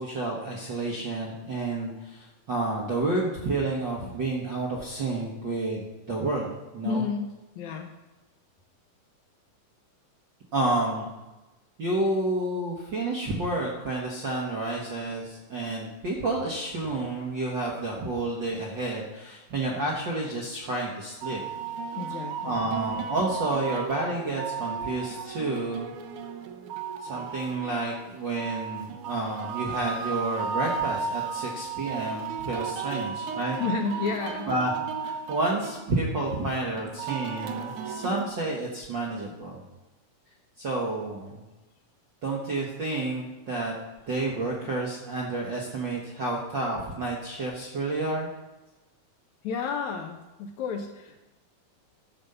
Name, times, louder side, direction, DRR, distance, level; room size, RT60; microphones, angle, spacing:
voice 1, 0.0-7.0 10.5-11.1 11.8-21.4 22.4-25.8 27.1-33.6 34.5-34.7 35.0-39.6 40.6-41.4 42.2-43.7 44.1-48.3, right 2 dB, 55° right, -2 dB, 1.3 m, -30 dB
voice 2, 6.8-7.9 21.9-22.6 33.6-34.5 49.4-51.2, left 5 dB, 70° left, 5 dB, 1.9 m, -31 dB
sound 1, 21.2-38.3, right 6 dB, 75° right, 2.1 m, -34 dB
12.0 x 5.2 x 6.8 m, 1.1 s
omnidirectional pair, 3.8 m